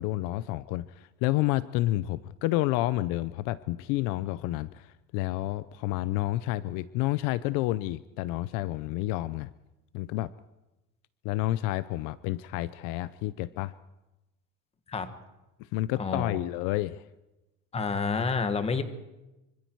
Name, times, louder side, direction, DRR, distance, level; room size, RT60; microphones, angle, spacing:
voice 1, 0.0-9.5 9.9-10.3 11.2-13.7 15.6-17.1, left 16 dB, 65° left, 17 dB, 0.7 m, -30 dB
voice 2, 16.0-16.4 17.7-18.8, left 4 dB, 15° left, 9 dB, 1.5 m, -29 dB
25.5 x 25.0 x 4.6 m, 1.0 s
cardioid pair, 160°, 35 cm